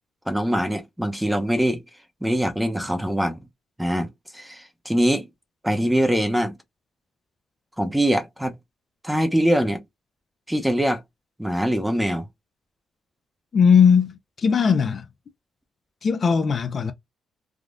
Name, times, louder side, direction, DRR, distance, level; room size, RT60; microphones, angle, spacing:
voice 1, 0.3-1.8 2.2-3.4 3.8-4.1 4.3-5.3 5.6-6.5 7.8-8.5 9.0-9.8 10.5-11.0 11.4-12.3, equal, 5° right, 0.8 m, -23 dB
voice 2, 13.5-15.0 16.0-16.9, left 6 dB, 45° left, 0.5 m, -18 dB
3.5 x 2.3 x 2.5 m
cardioid pair, 90°, 0 cm